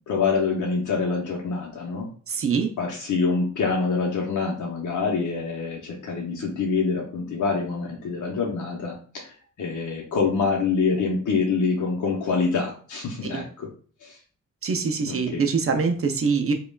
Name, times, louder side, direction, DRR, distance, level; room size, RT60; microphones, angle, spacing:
voice 1, 0.1-2.1 2.8-13.7 14.0-14.2 15.0-15.4, left 4 dB, 70° left, -1 dB, 0.7 m, -26 dB
voice 2, 2.3-2.7 13.3-13.4 14.6-16.5, right 5 dB, 45° right, 5 dB, 0.5 m, -24 dB
5.1 x 2.3 x 2.2 m, 0.42 s
wide cardioid pair, 180°, 31 cm